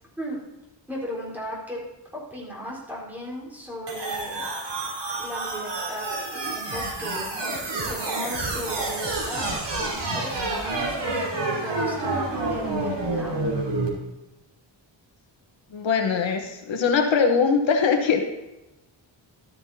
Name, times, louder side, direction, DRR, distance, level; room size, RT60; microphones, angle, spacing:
voice 1, 0.9-1.8 2.1-4.5 5.2-9.5 9.8-11.3 11.6-13.4, equal, 5° right, -6 dB, 4.1 m, -36 dB
sound 1, 3.9-13.9, right 2 dB, 65° right, 3.4 m, -29 dB
voice 2, 15.7-18.2, left 5 dB, 80° left, 4 dB, 1.2 m, -21 dB
14.0 x 12.5 x 2.8 m, 0.97 s
wide cardioid pair, 170°, 45 cm